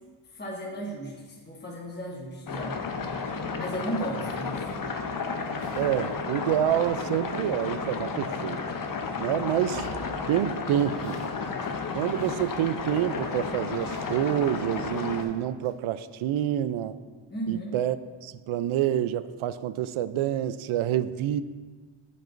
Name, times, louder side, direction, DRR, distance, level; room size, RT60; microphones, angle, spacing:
voice 1, 0.3-2.8 3.5-4.7 17.3-17.8, right 1 dB, 20° left, -3 dB, 1.2 m, -35 dB
sound 1, 1.1-1.5 2.0-2.6 2.9-3.9 4.2-6.3 6.6-7.4 7.7-8.4 8.9-10.4 10.7-11.3 11.6-15.4 15.6-15.7, right 2 dB, 55° right, 1.5 m, -50 dB
sound 2, 2.5-15.2, left 4 dB, 40° left, 0.7 m, -32 dB
voice 2, 5.8-8.6 9.2-9.8 10.3-11.2 11.9-17.0 17.5-18.0 18.2-21.4, right 11 dB, 75° right, 14 dB, 0.5 m, -27 dB
14.0 x 5.4 x 2.6 m, 1.4 s
cardioid pair, 100°, 50 cm